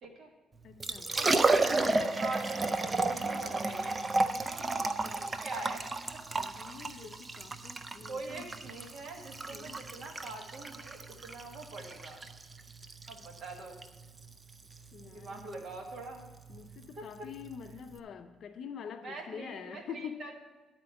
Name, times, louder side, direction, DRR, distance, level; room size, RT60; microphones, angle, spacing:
voice 1, 0.0-0.3 1.1-4.1 4.4-5.8 6.1-6.2 6.8-7.1 8.0-12.3 13.1-13.8 15.0-16.3 16.9-17.3 19.0-20.3, right 3 dB, 55° right, 1 dB, 1.6 m, -44 dB
voice 2, 0.6-1.1 6.3-8.5 9.5-9.8 14.9-15.5 16.5-20.2, left 7 dB, 55° left, 7 dB, 0.5 m, -45 dB
Liquid, 0.6-18.0, right 2 dB, 20° right, 0.4 m, -33 dB
11.0 x 4.3 x 6.8 m, 1.2 s
cardioid pair, 150°, 0 cm